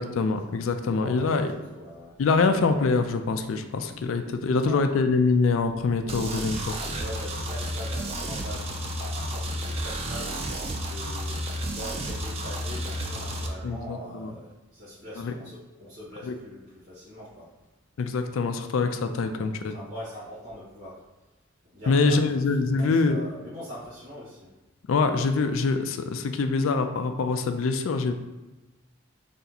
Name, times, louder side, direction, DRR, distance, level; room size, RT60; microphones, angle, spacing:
voice 1, 0.0-1.5 2.2-6.8 13.6-14.3 15.2-15.3 16.3-16.4 18.0-19.7 21.9-23.2 24.9-28.1, left 4 dB, 85° left, 8 dB, 0.4 m, -24 dB
voice 2, 0.8-2.1 4.6-4.8 6.9-8.6 9.0-10.5 10.9-17.5 19.3-21.0 21.7-22.4 22.7-24.5, equal, 60° right, -13 dB, 1.4 m, -42 dB
sound 1, 6.1-13.5, equal, 30° right, 0.4 m, -32 dB
3.3 x 2.8 x 4.0 m, 1.1 s
head